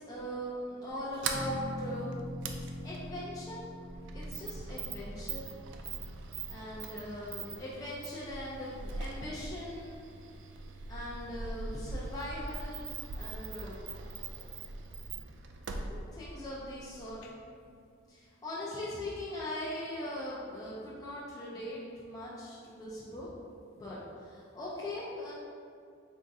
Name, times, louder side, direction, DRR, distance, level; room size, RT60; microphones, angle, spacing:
voice 1, 0.0-2.2 2.8-3.6 4.1-5.4 6.5-10.0 10.9-13.8 14.3-14.5 15.1-15.2 15.9-17.2 18.1-23.3 23.7-25.3, left 1 dB, 20° left, -8 dB, 0.5 m, -40 dB
Sliding door, 0.9-17.3, right 4 dB, 60° right, 0.3 m, -42 dB
sound 1, 1.3-7.9, left 1 dB, ahead, 0.9 m, -44 dB
voice 2, 10.1-10.9 14.0-16.2 17.2-17.3 17.7-18.4 24.5-24.6, left 1 dB, 85° left, 0 dB, 0.6 m, -66 dB
4.3 x 3.6 x 2.6 m, 2.3 s
head